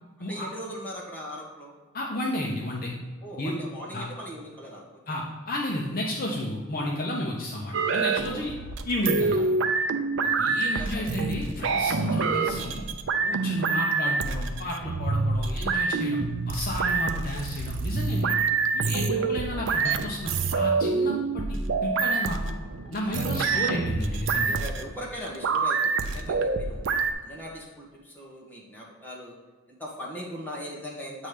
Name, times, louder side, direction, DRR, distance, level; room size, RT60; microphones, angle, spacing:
voice 1, 0.2-1.7 3.2-5.0 8.2-8.5 9.4-9.5 10.2-11.3 12.0-12.2 13.4-13.7 19.2-19.4 22.9-23.6 24.4-26.8 27.2-29.3 29.7-31.3, equal, 10° left, -4 dB, 1.4 m, -40 dB
voice 2, 1.9-2.9 3.4-3.5 3.9-4.1 5.1-8.5 8.9-9.4 10.4-12.8 13.2-16.2 16.4-18.3 18.7-22.6 22.9-24.6, left 1 dB, 40° left, -1 dB, 0.7 m, -32 dB
sound 1, 7.7-27.1, right 4 dB, 60° right, 0.5 m, -26 dB
8.1 x 3.2 x 5.0 m, 1.3 s
head